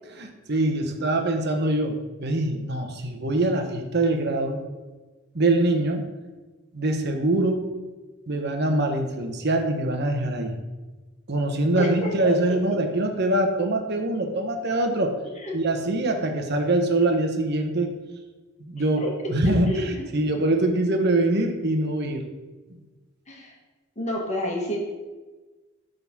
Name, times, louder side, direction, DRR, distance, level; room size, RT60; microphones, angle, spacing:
voice 1, 0.1-4.6 5.3-6.0 6.7-7.8 8.3-10.6 11.3-15.1 15.5-17.9 18.6-19.0 19.3-22.2, right 2 dB, 55° right, 4 dB, 1.1 m, -24 dB
voice 2, 11.8-12.3 15.4-15.5 19.0-19.1 19.7-20.0 23.3-23.5 24.0-24.8, equal, 35° left, -1 dB, 1.6 m, -29 dB
9.3 x 4.0 x 6.1 m, 1.3 s
head